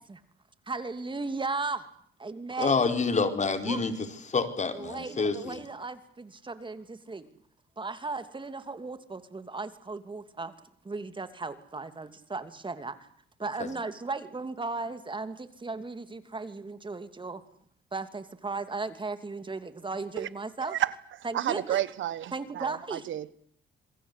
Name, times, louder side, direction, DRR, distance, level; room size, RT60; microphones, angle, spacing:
voice 1, 0.7-1.9 2.2-2.9 3.6-3.8 4.7-7.3 7.8-10.5 10.8-13.1 13.4-17.4 17.9-20.8 21.2-21.8 22.3-23.1, right 3 dB, 25° right, 2.7 m, -36 dB
voice 2, 2.6-3.9 4.3-5.6 13.6-13.7, left 4 dB, 35° left, 4.3 m, -27 dB
voice 3, 21.3-23.3, right 12 dB, 75° right, 1.3 m, -31 dB
27.0 x 22.0 x 8.3 m
cardioid pair, 90°, 20 cm